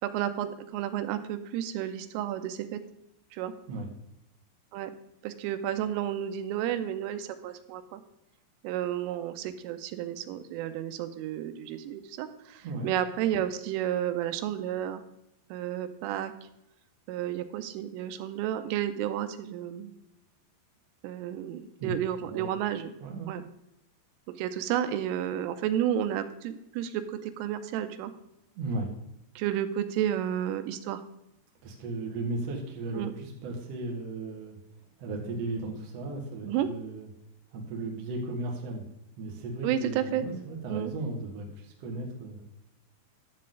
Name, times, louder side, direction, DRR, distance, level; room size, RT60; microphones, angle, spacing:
voice 1, 0.0-2.8 3.3-3.5 4.7-4.9 5.2-8.0 8.6-15.0 15.5-16.3 17.1-19.9 21.0-22.9 23.3-23.4 24.4-28.1 29.4-31.0 32.9-33.1 36.4-36.7 39.6-40.3 40.7-40.9, right 11 dB, 90° right, 10 dB, 3.2 m, -31 dB
voice 2, 23.0-23.3 28.5-28.9 31.6-34.6 35.0-37.1 37.5-38.8 39.2-42.5, right 2 dB, 70° right, 0 dB, 1.5 m, -36 dB
11.5 x 7.7 x 3.8 m, 0.82 s
omnidirectional pair, 5.7 m